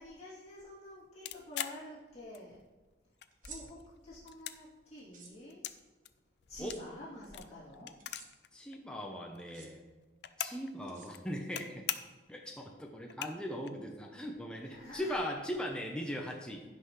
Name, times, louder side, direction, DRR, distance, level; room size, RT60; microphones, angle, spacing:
voice 1, 0.0-2.6 3.4-5.7 6.5-8.0 14.6-15.2, left 1 dB, 35° left, -10 dB, 3.0 m, -49 dB
sound 1, 1.3-2.7 3.0-3.8 4.1-5.8 6.1-8.5 8.7-8.8 9.0-10.7 11.0-11.6 11.9-12.3 12.7-12.8 13.0-13.7, left 10 dB, 65° left, 0.5 m, -41 dB
sound 2, 3.3-3.6 5.0-5.3 6.6-6.8 8.0-8.3 9.4-9.7 10.9-11.5, right 6 dB, 45° right, 1.3 m, -52 dB
voice 2, 8.5-9.8 10.4-11.8 12.3-16.6, equal, 5° left, 0 dB, 0.8 m, -39 dB
16.5 x 5.7 x 3.2 m, 1.3 s
head